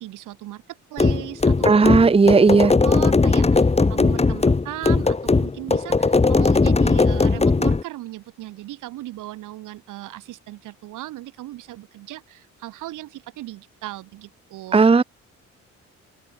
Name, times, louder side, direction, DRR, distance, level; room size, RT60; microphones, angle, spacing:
voice 1, 0.0-1.8 2.8-14.9, right 16 dB, 90° right, 5.5 m, -37 dB
sound 1, 1.0-7.8, left 3 dB, 20° left, 1.8 m, -18 dB
voice 2, 1.6-2.7 14.7-15.0, right 4 dB, 20° right, 0.9 m, -14 dB
open air
cardioid pair, 90°, 30 cm